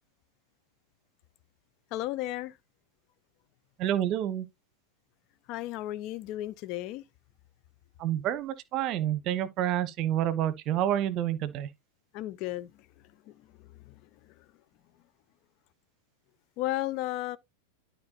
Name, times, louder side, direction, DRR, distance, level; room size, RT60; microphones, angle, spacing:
voice 1, 1.9-2.5 5.5-7.0 12.1-12.7 13.9-14.0 16.6-17.4, left 16 dB, 40° left, 0.7 m, -33 dB
voice 2, 3.8-4.5 8.0-11.7, right 11 dB, 35° right, 1.0 m, -28 dB
12.0 x 4.4 x 2.9 m
figure-of-eight pair, 90°, 0 cm